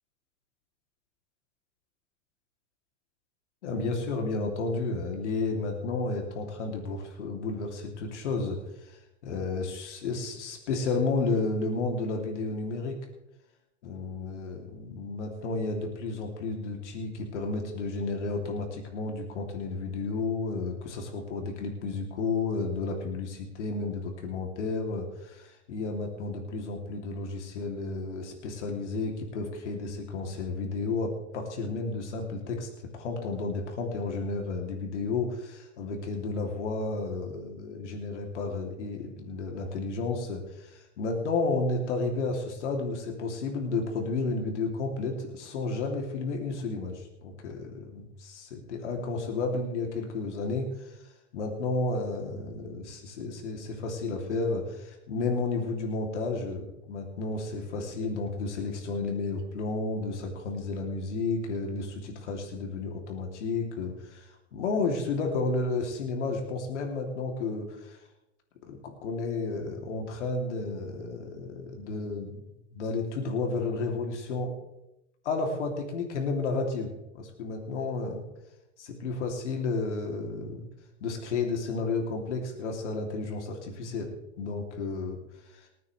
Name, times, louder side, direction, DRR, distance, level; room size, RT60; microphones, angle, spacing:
voice 1, 3.6-13.0 13.8-68.0 68.6-72.4 72.7-74.5 75.2-78.2 78.8-80.6 81.0-85.2 85.5-85.7, left 3 dB, 85° left, 2 dB, 3.0 m, -32 dB
26.0 x 9.4 x 3.3 m, 0.88 s
hypercardioid pair, 120°, 35 cm